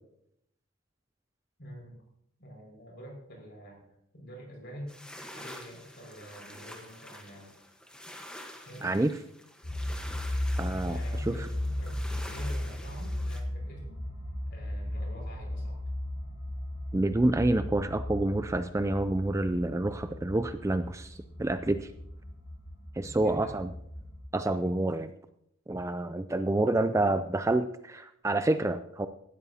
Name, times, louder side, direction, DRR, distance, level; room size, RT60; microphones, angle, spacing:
voice 1, 1.6-2.0 2.4-3.8 4.1-5.0 5.3-7.5 8.6-9.1 10.8-14.0 14.5-15.8 23.0-23.6, equal, 55° left, 0 dB, 5.5 m, -46 dB
sound 1, 4.9-13.4, left 1 dB, 5° left, 1.1 m, -47 dB
voice 2, 8.8-9.2 10.6-11.0 11.3-11.5 16.9-21.9 23.0-23.7 24.3-25.1 25.7-29.1, right 2 dB, 15° right, 10 dB, 0.3 m, -28 dB
sound 2, 9.6-24.2, left 1 dB, 75° left, 3.7 m, -36 dB
17.0 x 13.0 x 2.8 m, 0.75 s
head